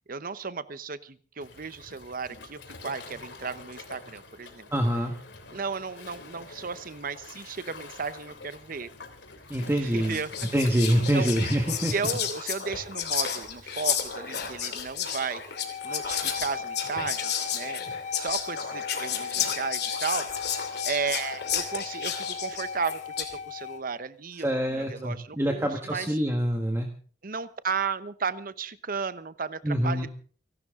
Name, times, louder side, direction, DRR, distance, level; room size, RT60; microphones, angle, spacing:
voice 1, 0.1-4.7 5.5-8.9 9.7-10.5 11.1-11.3 11.9-15.4 15.8-17.8 18.1-20.5 20.8-26.1 27.2-30.1, right 5 dB, 50° right, 14 dB, 0.9 m, -34 dB
Waves surf, 1.4-11.8, left 3 dB, 80° left, 3.1 m, -46 dB
voice 2, 4.7-5.1 9.5-10.2 10.5-11.9 24.4-26.9 29.6-30.1, equal, 15° right, 3 dB, 1.5 m, -25 dB
Whispering, 9.5-9.7 10.1-23.4, left 8 dB, 65° left, 2.8 m, -32 dB
sound 1, 15.6-23.8, left 6 dB, 45° left, 0.9 m, -37 dB
29.5 x 12.0 x 3.7 m, 0.41 s
head